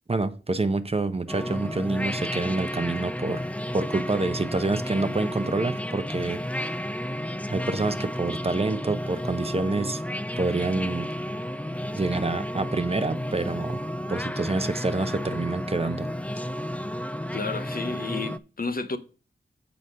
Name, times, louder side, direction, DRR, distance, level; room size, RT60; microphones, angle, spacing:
voice 1, 0.1-3.4 3.7-6.7 7.5-10.0 10.4-11.1 11.9-13.8 14.1-16.1, right 3 dB, 30° right, 0.8 m, -27 dB
sound 1, 1.3-18.4, equal, 5° left, 0.4 m, -32 dB
voice 2, 17.3-19.0, left 4 dB, 50° left, 0.9 m, -31 dB
7.5 x 4.1 x 6.4 m
cardioid pair, 55°, 19 cm